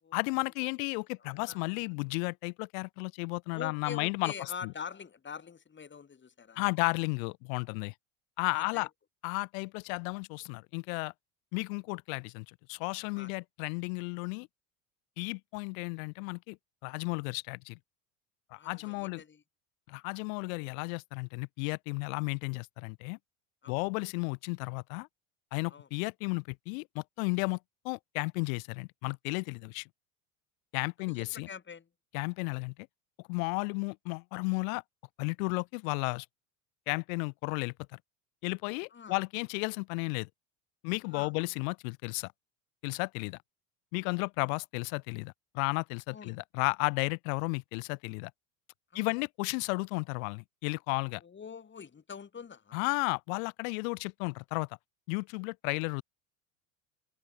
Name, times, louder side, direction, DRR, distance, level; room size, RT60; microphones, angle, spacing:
voice 1, 0.1-4.3 4.6-4.7 6.6-7.9 8.4-8.9 9.2-11.1 11.5-14.5 15.2-16.6 16.8-17.8 18.5-19.2 19.9-23.2 23.7-25.1 25.5-27.6 27.8-29.9 30.7-31.5 32.1-32.7 33.3-34.8 35.2-36.3 36.9-37.7 38.4-40.3 40.8-42.3 42.8-43.4 43.9-48.3 48.9-51.2 52.7-54.7 55.1-56.0, left 33 dB, 70° left, 0.6 m, -33 dB
voice 2, 1.2-1.8 3.5-6.7 8.5-8.9 13.1-13.3 18.6-19.4 23.6-23.8 25.7-25.9 31.0-31.9 38.9-39.2 41.1-41.3 44.4-44.5 46.1-46.4 48.9-49.2 51.2-52.8, left 6 dB, 25° left, 5.2 m, -45 dB
supercardioid pair, 100°, 42 cm